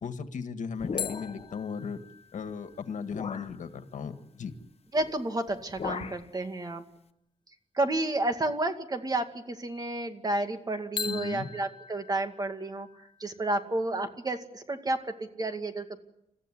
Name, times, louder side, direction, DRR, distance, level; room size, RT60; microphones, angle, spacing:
voice 1, 0.0-2.0 2.3-4.5 11.0-11.5, left 6 dB, 80° left, 8 dB, 1.8 m, -36 dB
sound 1, 0.8-1.6 2.5-2.6 3.1-3.6 5.0-5.2 5.5-6.3, left 6 dB, 55° left, 1.2 m, -38 dB
sound 2, 1.0-4.5 11.0-13.7, left 6 dB, 35° left, 1.3 m, -41 dB
voice 2, 4.9-6.8 7.7-12.9 13.2-16.0, right 2 dB, 30° right, 7 dB, 2.3 m, -31 dB
29.5 x 15.0 x 10.0 m, 0.79 s
wide cardioid pair, 130°, 13 cm